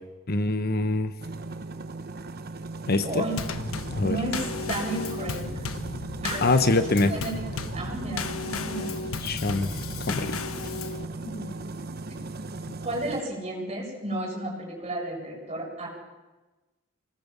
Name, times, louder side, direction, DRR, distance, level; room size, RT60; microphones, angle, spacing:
voice 1, 0.3-1.1 2.9-3.2 3.9-4.2 6.4-7.1 9.2-9.7 10.1-10.3, left 2 dB, 50° left, 10 dB, 1.1 m, -24 dB
sound 1, 1.2-13.2, right 2 dB, 50° right, 1.0 m, -38 dB
voice 2, 3.0-3.4 4.0-5.5 6.2-6.4 6.9-7.4 7.7-9.0 11.1-11.5 12.8-15.9, right 2 dB, 30° right, -2 dB, 7.8 m, -33 dB
Drum kit / Snare drum / Bass drum, 3.4-11.1, left 4 dB, 85° left, 1.3 m, -34 dB
25.0 x 19.5 x 7.5 m, 1.2 s
head